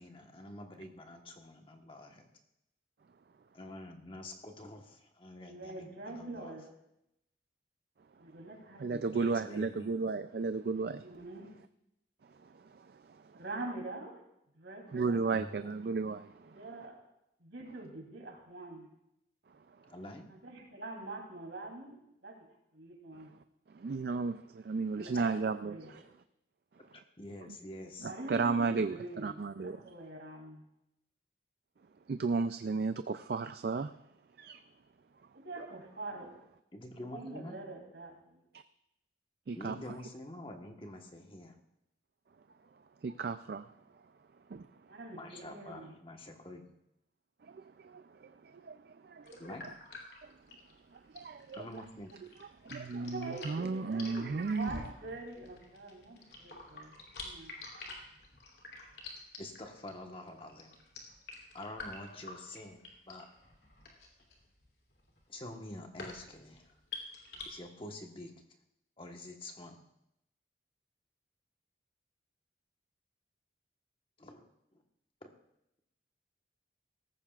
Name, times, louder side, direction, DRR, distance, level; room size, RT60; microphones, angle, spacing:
voice 1, 0.0-2.3 3.5-6.6 9.1-9.9 15.3-15.7 19.9-20.3 26.9-28.1 36.7-37.6 39.5-41.6 45.2-46.6 49.4-49.6 51.5-52.1 53.5-53.7 59.4-60.8 61.5-63.3 65.3-66.7 67.4-68.3 69.0-69.8 74.2-74.8 75.2-75.3, left 1 dB, 30° left, 3 dB, 1.2 m, -47 dB
voice 2, 5.4-6.6 8.2-9.4 10.7-11.5 13.4-14.2 14.5-15.3 16.5-17.0 17.4-18.9 20.3-22.5 22.7-23.3 24.9-26.1 28.0-30.6 35.3-36.4 36.9-38.4 44.9-45.9 53.0-57.5, right 2 dB, 75° right, 1 dB, 3.2 m, -45 dB
voice 3, 8.8-11.0 12.7-13.2 14.9-16.5 23.7-25.8 28.0-29.0 29.2-29.8 32.1-33.9 34.4-34.6 38.5-38.6 39.5-39.8 43.0-43.7 44.5-44.7 47.5-49.3 51.1-51.6 52.6-54.8, right 4 dB, 55° right, 10 dB, 0.4 m, -34 dB
sound 1, 49.3-67.4, left 3 dB, 60° left, 2.8 m, -48 dB
18.0 x 14.5 x 2.4 m, 0.83 s
head